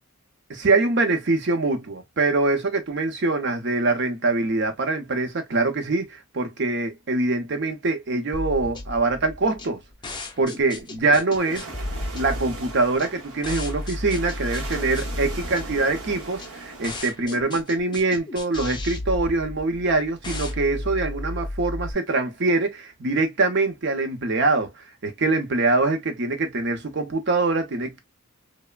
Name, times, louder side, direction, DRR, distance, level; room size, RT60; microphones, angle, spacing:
voice 1, 0.5-9.8 10.4-11.7 12.1-28.0, right 3 dB, 55° right, 0.7 m, -24 dB
sound 1, 8.3-21.9, left 1 dB, 20° left, 0.5 m, -33 dB
sound 2, 11.3-17.0, right 3 dB, 85° right, 0.8 m, -39 dB
3.2 x 2.1 x 2.2 m
head